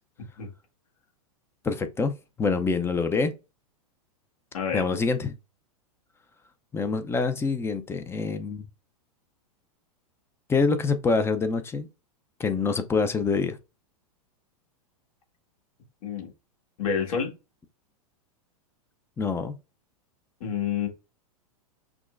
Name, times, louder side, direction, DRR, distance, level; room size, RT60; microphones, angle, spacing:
voice 1, 1.6-3.4 4.7-5.3 6.7-8.7 10.5-11.9 12.4-13.6 19.2-19.6, left 4 dB, 15° left, 0.5 m, -26 dB
voice 2, 4.5-4.9 16.0-16.3 16.8-17.3 20.4-20.9, left 7 dB, 65° left, 1.7 m, -28 dB
5.9 x 2.2 x 2.4 m
hypercardioid pair, 110°, 19 cm